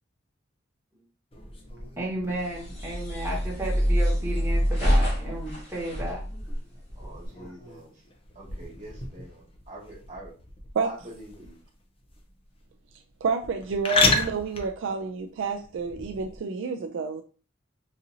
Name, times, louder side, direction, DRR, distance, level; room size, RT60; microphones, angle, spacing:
sound 1, 1.3-16.4, left 3 dB, 25° left, 0.5 m, -34 dB
voice 1, 2.0-6.2 7.5-7.6, right 1 dB, 10° right, 1.2 m, -33 dB
sound 2, 2.3-7.3, equal, 60° left, 1.9 m, -26 dB
voice 2, 6.9-8.0 8.3-10.3 10.8-11.6, right 1 dB, 35° right, 1.4 m, -45 dB
voice 3, 13.2-17.2, right 4 dB, 65° right, 0.3 m, -29 dB
4.0 x 2.7 x 2.6 m
head